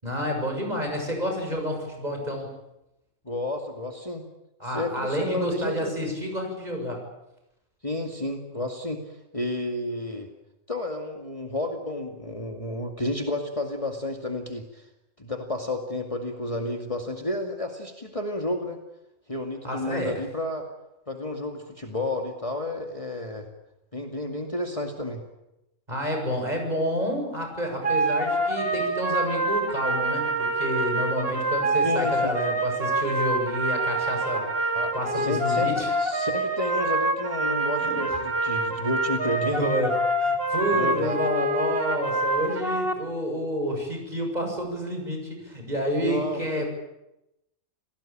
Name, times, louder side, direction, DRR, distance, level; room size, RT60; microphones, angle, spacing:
voice 1, 0.0-2.6 4.6-7.0 19.6-20.2 25.9-35.9 37.8-38.2 39.2-39.9 40.2-46.7, equal, 30° right, 3 dB, 7.3 m, -29 dB
voice 2, 3.2-4.2 4.7-5.9 7.8-9.0 9.3-10.3 10.7-14.9 15.2-18.8 19.3-20.6 21.1-23.5 23.9-25.2 31.8-32.3 34.7-35.7 36.0-39.7 40.7-41.2 46.0-46.6, left 1 dB, 25° left, 3 dB, 2.3 m, -31 dB
sound 1, 27.8-42.9, right 1 dB, 50° right, 2.5 m, -26 dB
28.5 x 18.5 x 8.8 m, 0.88 s
omnidirectional pair, 1.3 m